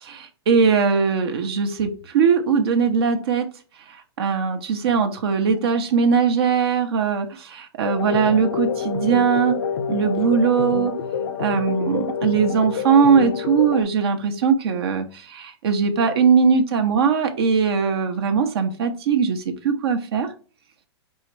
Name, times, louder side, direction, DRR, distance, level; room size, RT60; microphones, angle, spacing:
voice 1, 0.0-3.5 3.9-9.6 9.9-10.9 11.4-20.3, right 6 dB, 60° right, 5 dB, 0.8 m, -20 dB
sound 1, 7.8-13.8, left 6 dB, 65° left, 0.7 m, -27 dB
4.4 x 3.6 x 3.2 m, 0.37 s
hypercardioid pair, 120°, 14 cm